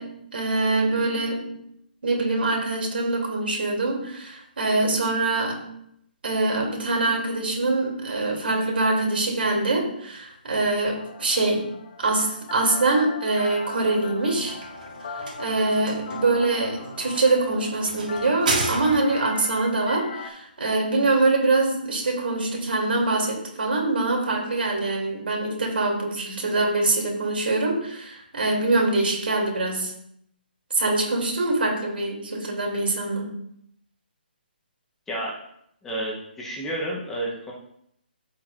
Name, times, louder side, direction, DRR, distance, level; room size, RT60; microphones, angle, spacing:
voice 1, 0.0-1.6 2.0-5.7 6.2-11.7 12.0-14.6 15.1-29.9 30.7-33.3, right 2 dB, 75° right, 0 dB, 2.7 m, -24 dB
sound 1, 10.9-20.3, left 5 dB, 45° left, 1.0 m, -39 dB
sound 2, 14.2-19.3, right 2 dB, 55° right, 1.8 m, -32 dB
voice 2, 35.1-35.4 35.8-37.5, right 1 dB, 5° left, -4 dB, 0.8 m, -30 dB
13.5 x 4.5 x 2.5 m, 0.72 s
hypercardioid pair, 175°, 6 cm